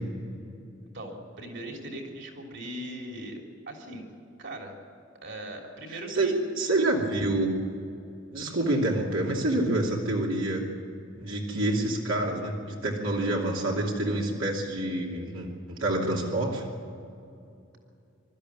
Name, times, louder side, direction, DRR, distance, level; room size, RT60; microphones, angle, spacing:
voice 1, 0.8-3.4 3.7-4.1 4.4-4.8 5.2-6.4, right 1 dB, 65° right, 1 dB, 3.3 m, -39 dB
voice 2, 5.9-7.5 8.3-10.6 11.2-15.5 15.8-16.6, right 2 dB, 90° right, -2 dB, 2.8 m, -27 dB
24.0 x 13.0 x 9.7 m, 2.6 s
head